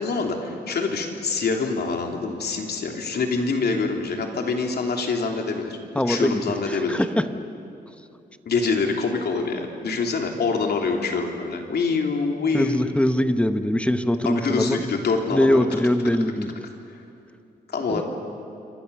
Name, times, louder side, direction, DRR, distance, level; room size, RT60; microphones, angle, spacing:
voice 1, 0.0-5.8 6.1-7.0 8.4-12.9 14.2-15.6 17.7-18.0, left 4 dB, 70° left, 2 dB, 3.2 m, -25 dB
voice 2, 5.9-7.2 12.5-14.8 15.3-16.5 17.9-18.0, left 1 dB, 5° left, 9 dB, 1.0 m, -22 dB
27.5 x 25.0 x 7.0 m, 2.7 s
wide cardioid pair, 125°, 17 cm